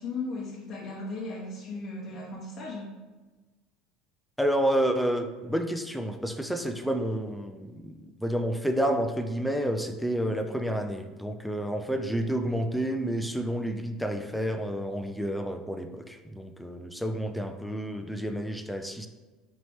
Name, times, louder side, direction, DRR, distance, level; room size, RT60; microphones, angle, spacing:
voice 1, 0.0-2.9, left 3 dB, 50° left, -5 dB, 0.9 m, -36 dB
voice 2, 4.4-19.1, equal, ahead, 6 dB, 0.4 m, -30 dB
4.4 x 2.9 x 3.2 m, 1.2 s
supercardioid pair, 100°, 0 cm